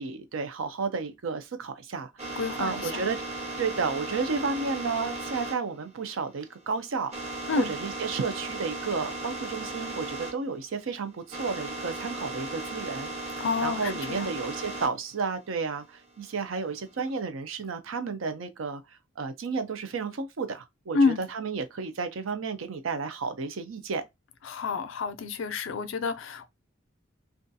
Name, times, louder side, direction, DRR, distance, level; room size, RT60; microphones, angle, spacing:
voice 1, 0.0-3.2 3.6-7.1 7.6-24.0, right 4 dB, 75° right, 0.5 m, -32 dB
sound 1, 2.2-10.3 10.6-14.9 15.4-17.2, right 2 dB, 35° right, 0.7 m, -37 dB
voice 2, 2.4-3.0 7.5-7.7 13.4-14.3 20.9-21.2 24.4-26.5, left 4 dB, 70° left, 0.4 m, -28 dB
2.4 x 2.3 x 2.6 m
head